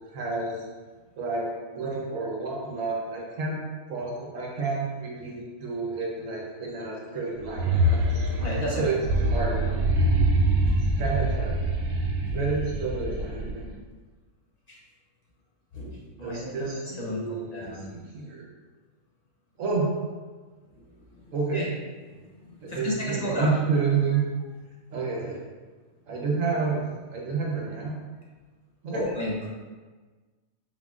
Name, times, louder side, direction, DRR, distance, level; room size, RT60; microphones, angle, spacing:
voice 1, 0.1-0.6 1.2-1.5 1.7-3.6 3.9-9.7 11.0-11.6 12.3-13.6 16.2-18.5 19.6-19.9 21.3-21.7 22.6-24.2 24.9-25.4 26.1-27.9 28.8-29.1, right 4 dB, 65° right, -3 dB, 1.2 m, -30 dB
sound 1, 7.4-13.7, right 1 dB, 90° right, 1.1 m, -25 dB
voice 2, 8.4-8.8 10.4-10.5 15.7-16.5 17.0-17.9 21.5-21.6 22.7-23.5 28.9-29.5, left 1 dB, 50° left, -5 dB, 0.5 m, -32 dB
4.4 x 3.9 x 2.4 m, 1.4 s
omnidirectional pair, 1.5 m